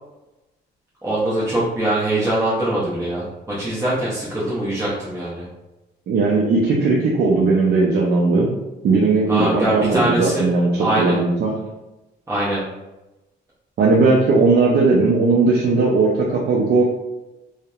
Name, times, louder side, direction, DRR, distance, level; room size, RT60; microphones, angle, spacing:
voice 1, 1.0-5.4 9.3-10.4 10.8-11.2 12.3-12.6, right 1 dB, 15° right, -8 dB, 0.6 m, -22 dB
voice 2, 6.1-8.5 8.8-11.5 13.8-16.8, right 3 dB, 55° right, -2 dB, 0.4 m, -17 dB
2.6 x 2.0 x 2.3 m, 1.0 s
cardioid pair, 90°, 20 cm